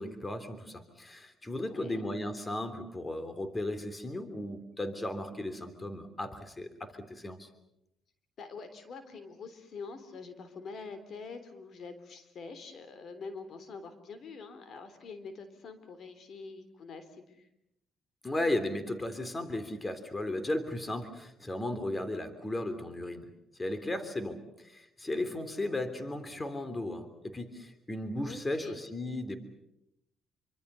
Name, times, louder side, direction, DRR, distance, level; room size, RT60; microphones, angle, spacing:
voice 1, 0.0-7.5 18.2-23.3 23.5-29.4, left 1 dB, 20° left, 9 dB, 3.2 m, -35 dB
voice 2, 1.6-2.0 8.4-17.5 28.2-28.8, left 4 dB, 60° left, 10 dB, 3.4 m, -45 dB
26.5 x 25.0 x 6.8 m, 0.83 s
cardioid pair, 90°, 0 cm